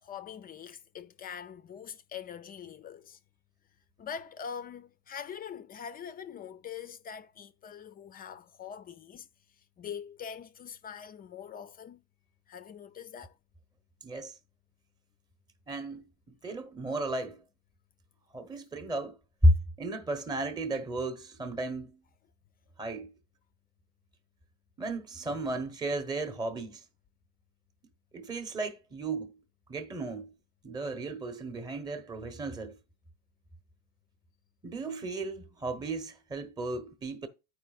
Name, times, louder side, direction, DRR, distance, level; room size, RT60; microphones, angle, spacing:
voice 1, 0.0-3.2 4.0-9.3 9.6-12.0 12.5-13.4, left 7 dB, 30° left, 0.4 m, -43 dB
voice 2, 14.0-14.4 15.7-17.4 18.3-19.2 19.4-22.0 22.8-23.1 24.8-26.8 28.1-29.4 29.7-30.3 30.6-32.8 34.6-37.3, right 1 dB, 10° right, 0.9 m, -33 dB
12.0 x 4.9 x 2.4 m
cardioid pair, 135°, 32 cm